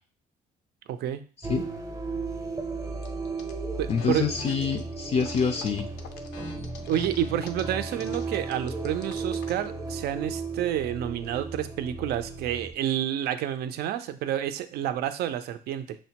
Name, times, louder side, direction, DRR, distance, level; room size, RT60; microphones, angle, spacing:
voice 1, 0.9-1.2 3.8-4.3 6.9-16.0, right 11 dB, 70° right, 10 dB, 0.4 m, -29 dB
sound 1, 1.4-12.7, right 3 dB, 20° right, 0.7 m, -35 dB
sound 2, 3.0-3.5 3.9-4.8 5.2-9.6, left 7 dB, 85° left, 0.6 m, -45 dB
voice 2, 3.9-5.9, left 6 dB, 40° left, 5 dB, 0.4 m, -26 dB
6.2 x 2.1 x 2.8 m, 0.39 s
cardioid pair, 110°, 17 cm